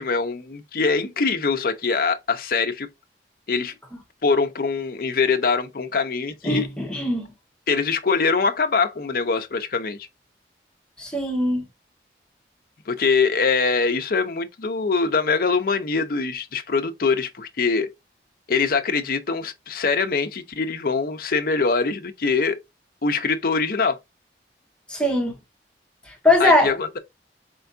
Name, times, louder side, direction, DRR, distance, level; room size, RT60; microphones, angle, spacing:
voice 1, 0.0-2.9 3.5-3.7 4.2-6.7 7.7-10.0 12.9-17.9 18.5-22.6 23.0-24.0 26.4-27.0, left 4 dB, 55° left, 0.6 m, -23 dB
voice 2, 6.4-7.3 11.0-11.6 24.9-25.3 26.1-26.7, left 1 dB, 5° left, 1.0 m, -21 dB
4.5 x 3.4 x 2.6 m
head